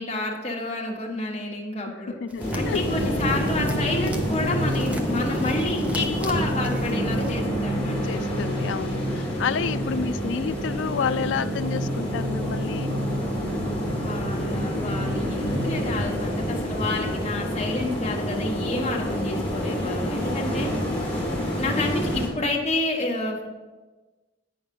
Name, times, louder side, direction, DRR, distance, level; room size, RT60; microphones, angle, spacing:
voice 1, 0.0-2.1 2.5-8.0 14.0-20.7 21.6-23.5, left 2 dB, 35° left, -1 dB, 1.4 m, -29 dB
voice 2, 1.8-2.8 8.0-12.9 21.3-21.5, left 6 dB, 80° left, 13 dB, 0.4 m, -30 dB
sound 1, 2.3-7.4, equal, 5° right, 0.6 m, -41 dB
sound 2, 2.4-22.3, equal, 10° left, 2.2 m, -28 dB
sound 3, 2.9-16.0, right 1 dB, 75° right, 0.7 m, -32 dB
8.8 x 5.9 x 5.4 m, 1.2 s
head